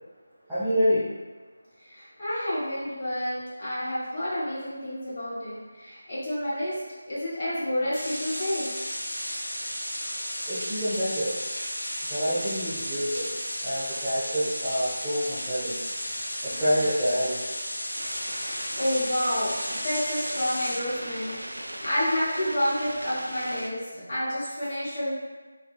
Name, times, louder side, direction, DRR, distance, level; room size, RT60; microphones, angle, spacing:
voice 1, 0.5-1.1 10.5-11.4 12.1-13.3 13.6-15.8 16.4-17.4, equal, ahead, -20 dB, 0.5 m, -27 dB
voice 2, 1.8-6.8 7.1-8.7 18.3-25.1, equal, 35° left, -11 dB, 1.2 m, -29 dB
sound 1, 7.9-20.8, equal, 55° left, 0.8 m, -33 dB
sound 2, 17.9-23.7, equal, 80° right, 0.3 m, -38 dB
2.5 x 2.3 x 2.2 m, 1.3 s
figure-of-eight pair, 160°, 0 cm